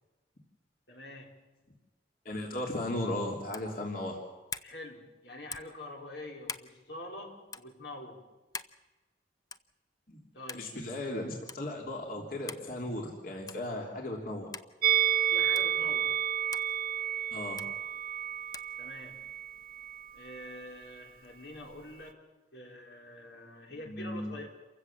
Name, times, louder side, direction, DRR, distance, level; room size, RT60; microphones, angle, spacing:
voice 1, 0.9-1.4 4.6-8.3 10.3-10.8 15.3-16.2 18.8-19.3 20.1-22.2 22.5-24.5, left 1 dB, 80° left, 1 dB, 4.2 m, -45 dB
voice 2, 2.2-4.2 10.1-10.2 10.5-14.5 17.3-17.7 23.9-24.3, left 1 dB, 55° left, 0 dB, 3.2 m, -36 dB
sound 1, 3.5-3.7 4.5-4.7 5.5-5.8 6.5-6.7 7.5-7.7 8.5-8.8 9.5-9.7 10.5-10.7 11.5-11.6 12.5-12.7 13.5-13.7 14.5-14.7 15.6-15.7 16.5-16.7 17.6-17.7 18.5-18.7, left 5 dB, 20° left, 0.7 m, -41 dB
Musical instrument, 14.8-20.1 20.3-20.5, right 10 dB, 55° right, 0.9 m, -30 dB
28.5 x 16.0 x 7.3 m, 1.2 s
head